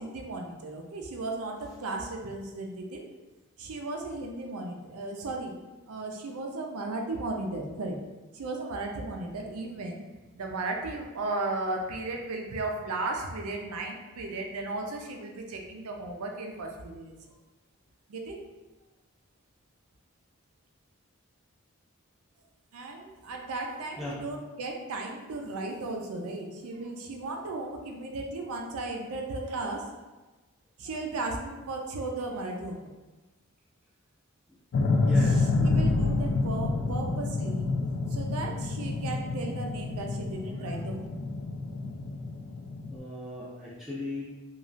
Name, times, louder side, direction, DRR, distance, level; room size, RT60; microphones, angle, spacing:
voice 1, 0.0-3.0 3.6-5.5 5.9-8.0 8.3-10.1 10.4-17.1 18.1-18.4 22.7-30.0 30.8-32.9 35.1-37.7 38.1-41.1, right 2 dB, 85° right, 2 dB, 0.4 m, -35 dB
sound 1, 34.7-43.0, left 3 dB, 70° left, 0.3 m, -28 dB
voice 2, 34.7-35.7 42.9-44.2, left 2 dB, ahead, -9 dB, 0.4 m, -38 dB
3.0 x 2.3 x 2.5 m, 1.2 s
head